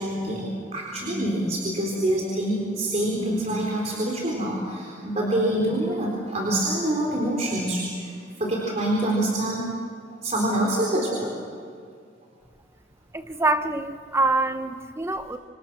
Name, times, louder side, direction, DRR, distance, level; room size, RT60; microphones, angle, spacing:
voice 1, 0.0-8.1 8.4-9.7 10.1-11.3, right 1 dB, 40° right, -2 dB, 4.1 m, -26 dB
voice 2, 13.1-15.4, right 2 dB, 15° right, 9 dB, 0.9 m, -25 dB
28.0 x 25.5 x 6.2 m, 2.2 s
head